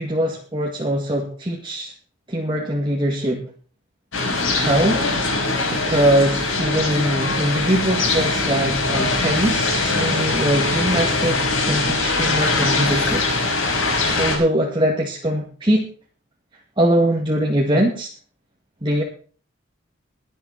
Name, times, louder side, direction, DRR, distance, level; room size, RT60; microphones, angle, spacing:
voice 1, 0.0-1.9 2.3-3.4 4.6-5.0 5.7-13.2 14.2-15.8 16.8-18.1 18.8-19.0, right 1 dB, 20° right, -1 dB, 2.0 m, -22 dB
sound 1, 4.1-14.4, left 3 dB, 65° left, 5.2 m, -22 dB
22.0 x 7.8 x 4.4 m, 0.41 s
head